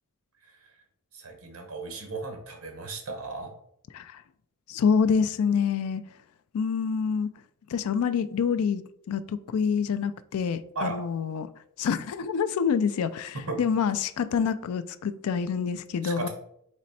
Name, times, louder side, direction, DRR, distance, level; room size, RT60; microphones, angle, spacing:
voice 1, 1.1-3.5 10.7-11.0 13.3-13.6 16.0-16.3, right 3 dB, 65° right, 1.2 m, -35 dB
voice 2, 4.7-6.0 6.5-7.3 7.7-11.5 11.8-16.3, left 6 dB, 70° left, 0.3 m, -27 dB
4.2 x 3.1 x 4.1 m
head